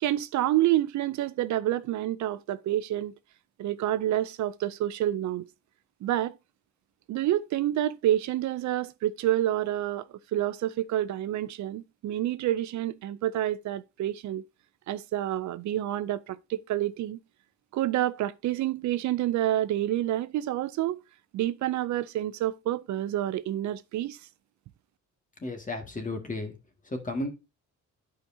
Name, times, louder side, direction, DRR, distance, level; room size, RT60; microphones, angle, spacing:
voice 1, 0.0-3.1 3.6-5.5 6.0-6.3 7.1-14.4 14.9-17.2 17.7-21.0 21.3-24.2, right 13 dB, 70° right, 0.5 m, -28 dB
voice 2, 25.4-26.5 26.9-27.3, left 2 dB, 25° left, 1.9 m, -33 dB
11.0 x 5.0 x 2.7 m
cardioid pair, 90°, 30 cm